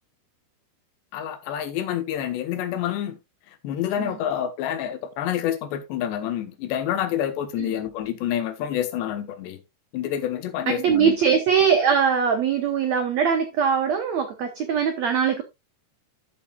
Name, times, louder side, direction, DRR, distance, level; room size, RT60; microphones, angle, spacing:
voice 1, 1.1-3.2 3.6-9.6 9.9-11.2, left 10 dB, 85° left, 3.5 m, -28 dB
voice 2, 10.7-15.4, right 7 dB, 90° right, 1.5 m, -21 dB
13.0 x 7.2 x 2.4 m
omnidirectional pair, 4.8 m